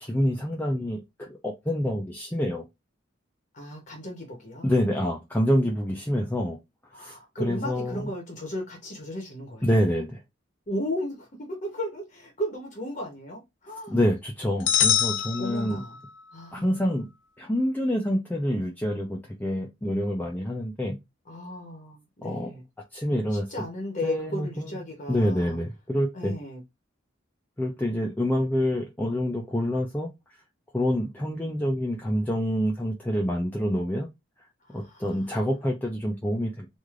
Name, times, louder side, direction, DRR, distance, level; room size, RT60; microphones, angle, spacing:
voice 1, 0.0-2.6 4.6-6.6 7.0-8.0 9.6-10.1 13.9-15.8 16.5-17.1 17.4-21.0 22.2-22.5 22.9-23.5 24.0-24.8 25.1-26.3 27.6-30.1 30.7-34.1 34.7-36.7, equal, 10° left, 0.4 m, -27 dB
voice 2, 3.5-4.7 6.9-9.8 10.7-14.0 15.4-16.0 16.3-17.0 21.2-22.6 23.3-25.6 26.1-26.6 34.6-35.4, left 1 dB, 40° left, 0.8 m, -35 dB
sound 1, 14.7-16.2, left 10 dB, 70° left, 0.4 m, -25 dB
3.2 x 2.5 x 2.4 m
head